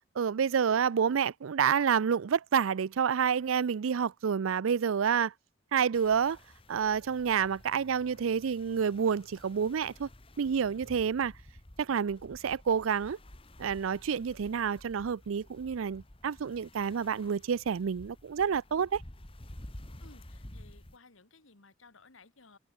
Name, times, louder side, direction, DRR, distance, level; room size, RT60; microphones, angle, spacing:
voice 1, 0.2-5.3 5.7-6.4 6.7-10.1 10.4-11.3 11.8-13.2 13.6-19.0, right 7 dB, 85° right, 0.4 m, -29 dB
sound 1, 5.9-21.0, left 1 dB, 25° left, 1.8 m, -52 dB
voice 2, 20.0-22.6, left 3 dB, 80° left, 2.1 m, -58 dB
head